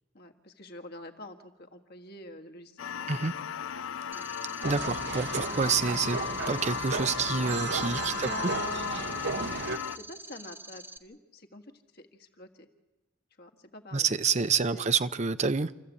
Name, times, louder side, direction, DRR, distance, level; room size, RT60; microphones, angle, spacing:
voice 1, 0.1-3.1 4.1-4.3 8.1-9.6 9.9-11.6 11.9-12.7 13.4-14.1 14.7-14.9, left 2 dB, 50° left, 1.7 m, -44 dB
sound 1, 2.8-10.0, left 8 dB, 80° left, 0.6 m, -36 dB
sound 2, 4.1-11.0, right 2 dB, 10° right, 1.0 m, -46 dB
voice 2, 4.6-6.2 6.5-8.3 13.9-15.7, right 5 dB, 35° right, 0.6 m, -28 dB
sound 3, 4.6-9.8, right 4 dB, 55° right, 0.9 m, -35 dB
27.5 x 14.5 x 8.3 m
head